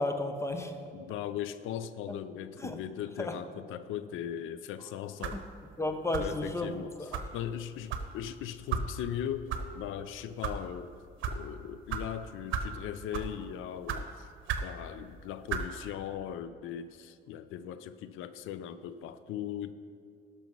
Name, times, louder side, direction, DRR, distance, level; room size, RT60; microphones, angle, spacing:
voice 1, 0.0-0.8 2.6-2.8 3.2-3.4 5.3-5.4 5.8-7.2, left 2 dB, 15° left, 7 dB, 0.9 m, -33 dB
voice 2, 0.9-5.5 6.2-6.9 7.3-9.5 9.7-10.9 11.3-14.3 14.6-19.7, left 10 dB, 85° left, 13 dB, 0.5 m, -39 dB
sound 1, 5.2-5.5 6.1-6.4 7.1-7.3 7.9-8.1 8.7-8.9 9.5-9.6 10.2-10.6 11.2-11.4 11.9-12.0 12.5-12.7 13.1-13.4 13.9-14.0 14.5-14.7 15.5-15.7, right 6 dB, 80° right, 0.9 m, -33 dB
11.5 x 6.2 x 5.3 m, 2.4 s
cardioid pair, 90°, 20 cm